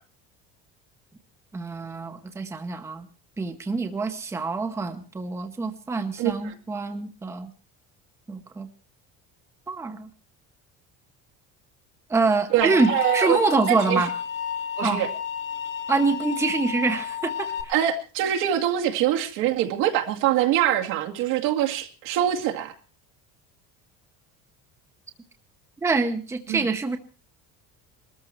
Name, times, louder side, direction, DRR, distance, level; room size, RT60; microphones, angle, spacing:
voice 1, 1.5-3.1 3.4-7.5 8.3-8.7 9.7-10.1 12.1-14.1 14.8-15.0 15.9-17.7 25.8-27.0, right 4 dB, 10° right, 7 dB, 0.9 m, -25 dB
voice 2, 6.2-6.5 12.5-14.0 14.8-15.1 17.7-22.7 26.5-26.6, right 11 dB, 75° right, 2 dB, 2.3 m, -24 dB
sound 1, 12.6-17.6, left 8 dB, 85° left, 2.8 m, -31 dB
21.0 x 14.0 x 4.5 m, 0.36 s
cardioid pair, 170°, 32 cm